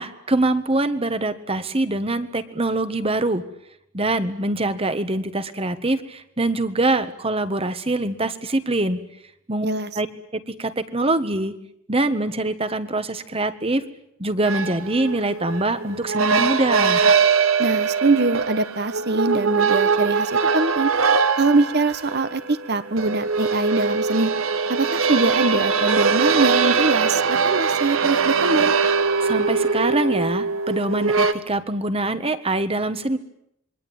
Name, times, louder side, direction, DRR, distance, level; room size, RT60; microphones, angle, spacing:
voice 1, 0.0-3.4 3.9-9.0 9.5-9.7 9.9-10.1 10.3-11.6 11.9-13.8 14.2-17.0 29.2-33.2, right 2 dB, 30° right, 11 dB, 1.6 m, -24 dB
sound 1, 14.4-31.3, right 5 dB, 85° right, 1.7 m, -21 dB
voice 2, 17.6-20.9 21.3-24.3 24.7-28.7, right 3 dB, 50° right, 12 dB, 1.4 m, -23 dB
27.0 x 23.0 x 9.0 m, 0.75 s
head